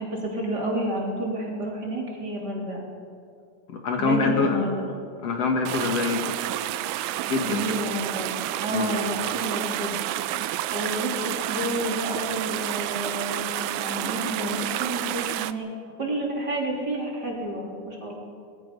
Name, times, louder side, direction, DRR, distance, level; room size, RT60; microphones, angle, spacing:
voice 1, 0.0-2.9 4.0-4.8 7.4-10.0 10.3-13.5 13.8-15.7 16.0-18.1, right 1 dB, 35° right, -2 dB, 3.8 m, -30 dB
voice 2, 3.7-4.6 5.2-6.4 7.3-7.6 8.7-9.0, left 4 dB, 60° left, 3 dB, 2.9 m, -25 dB
sound 1, 5.7-15.5, right 14 dB, 80° right, 2.0 m, -30 dB
25.0 x 21.5 x 5.5 m, 2.4 s
omnidirectional pair, 3.4 m